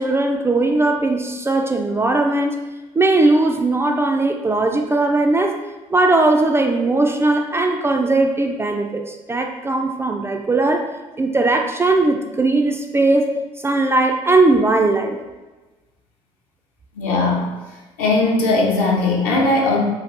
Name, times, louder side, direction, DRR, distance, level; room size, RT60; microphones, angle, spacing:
voice 1, 0.0-2.6 3.0-5.6 5.9-10.9 11.2-13.3 13.6-15.2, right 2 dB, 15° right, 3 dB, 0.3 m, -18 dB
voice 2, 16.9-17.5 18.0-19.8, left 2 dB, 65° left, -2 dB, 0.8 m, -18 dB
4.1 x 2.5 x 3.2 m, 1.2 s
figure-of-eight pair, 55°, 16 cm